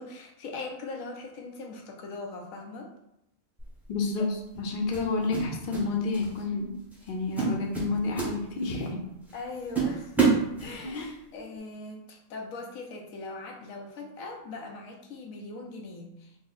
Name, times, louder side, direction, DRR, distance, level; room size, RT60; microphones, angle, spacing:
voice 1, 0.0-2.9 4.2-4.4 9.3-10.2 10.6-16.4, left 3 dB, 85° left, 2 dB, 1.1 m, -40 dB
sound 1, 3.6-3.8 4.9-5.9 6.1-6.4 6.9-7.1 7.4-8.9 9.3-9.4 9.7-11.1, right 4 dB, ahead, 0.6 m, -27 dB
voice 2, 3.9-4.2 4.5-6.7 7.1-9.0 10.8-11.1, left 3 dB, 50° left, 0 dB, 0.7 m, -30 dB
3.9 x 2.0 x 3.8 m, 0.80 s
omnidirectional pair, 1.4 m